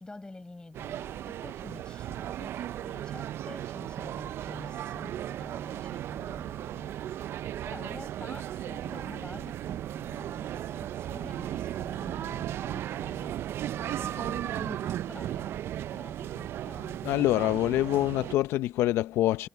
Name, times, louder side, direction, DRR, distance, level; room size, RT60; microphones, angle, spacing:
voice 1, 0.0-15.7 15.9-17.1, left 2 dB, 20° left, 7.3 m, -48 dB
sound 1, 0.7-18.4, right 11 dB, 70° right, 0.4 m, -36 dB
voice 2, 17.0-19.5, left 15 dB, 80° left, 0.6 m, -25 dB
supercardioid pair, 65°, 4 cm